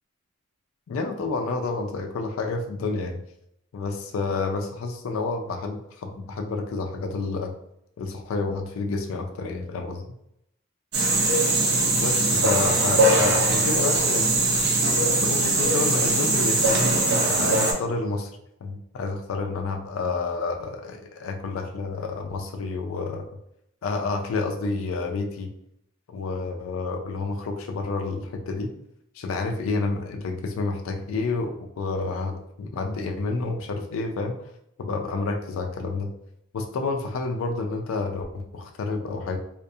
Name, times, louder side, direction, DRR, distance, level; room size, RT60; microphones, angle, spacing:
voice 1, 0.9-3.2 3.7-7.5 8.0-10.0 11.9-14.4 15.2-18.3 18.6-23.3 23.8-25.5 26.1-28.7 29.2-34.4 34.8-36.1 36.5-39.4, left 3 dB, 80° left, 4 dB, 0.3 m, -29 dB
sound 1, 10.9-17.7, right 2 dB, 55° right, 0.5 m, -21 dB
2.4 x 2.3 x 2.6 m, 0.78 s
head